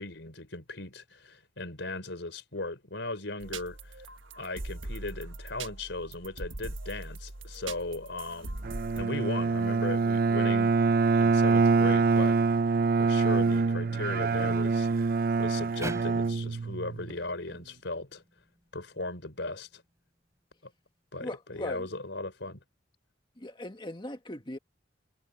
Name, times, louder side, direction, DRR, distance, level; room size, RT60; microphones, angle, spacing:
voice 1, 0.0-4.0 4.4-8.6 9.0-12.4 12.6-15.1 15.4-18.2 18.7-19.8 20.6-20.7 21.1-22.6, left 2 dB, 70° left, 4.2 m, -37 dB
sound 1, 3.4-9.0, right 2 dB, 90° right, 1.5 m, -41 dB
Bowed string instrument, 8.6-17.1, right 4 dB, 50° right, 0.4 m, -25 dB
sound 2, 15.8-19.0, right 1 dB, 15° right, 3.5 m, -43 dB
voice 2, 21.2-21.9 23.4-24.6, left 1 dB, 25° left, 1.7 m, -39 dB
head